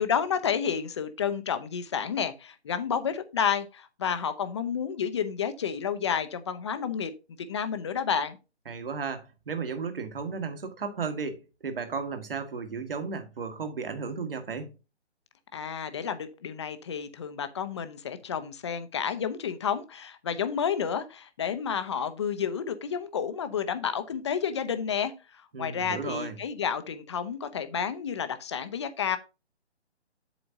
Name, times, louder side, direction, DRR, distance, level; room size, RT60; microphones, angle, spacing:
voice 1, 0.0-7.1 7.5-8.4 15.5-29.2, left 7 dB, 25° left, 0.7 m, -30 dB
voice 2, 8.7-14.7 25.5-26.4, right 5 dB, 55° right, 1.8 m, -34 dB
8.0 x 7.9 x 2.7 m
figure-of-eight pair, 145°, 34 cm